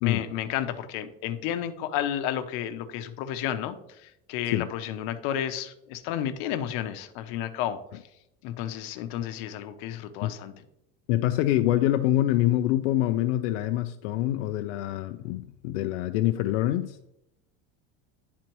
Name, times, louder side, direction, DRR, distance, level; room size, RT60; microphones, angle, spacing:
voice 1, 0.0-7.8 8.4-10.6, left 10 dB, 65° left, 0.8 m, -32 dB
voice 2, 11.1-17.0, left 14 dB, 90° left, 0.5 m, -25 dB
10.5 x 4.2 x 3.0 m
supercardioid pair, 120°, 36 cm